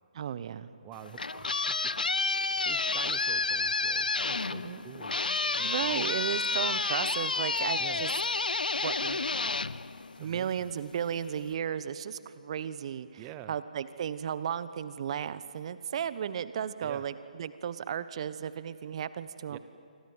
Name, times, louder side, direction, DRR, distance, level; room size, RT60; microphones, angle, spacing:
voice 1, 0.1-0.7 4.6-4.8 5.6-8.1 8.8-9.2 10.2-19.6, right 8 dB, 40° right, 14 dB, 1.2 m, -34 dB
voice 2, 0.8-5.2 5.5-6.1 7.8-8.0 9.0-9.2 10.2-10.5 13.2-13.5 16.8-17.0 19.5-19.6, right 13 dB, 20° right, 12 dB, 0.9 m, -48 dB
sound 1, 0.9-10.6, left 3 dB, 75° left, 0.7 m, -30 dB
27.5 x 25.0 x 8.0 m, 2.4 s
figure-of-eight pair, 140°, 5 cm